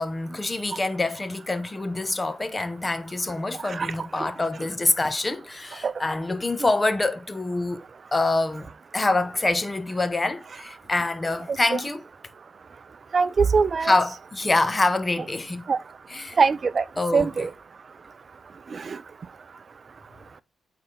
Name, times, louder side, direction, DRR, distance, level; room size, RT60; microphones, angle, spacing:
voice 1, 0.0-7.8 8.1-12.0 13.8-15.6 16.1-16.4 17.0-17.5, left 2 dB, 25° left, 0.9 m, -26 dB
voice 2, 13.1-13.9 15.7-15.8 16.4-16.8 17.1-17.5 18.7-19.0, right 5 dB, 50° right, 0.5 m, -21 dB
8.6 x 4.2 x 3.8 m
cardioid pair, 75°, 0 cm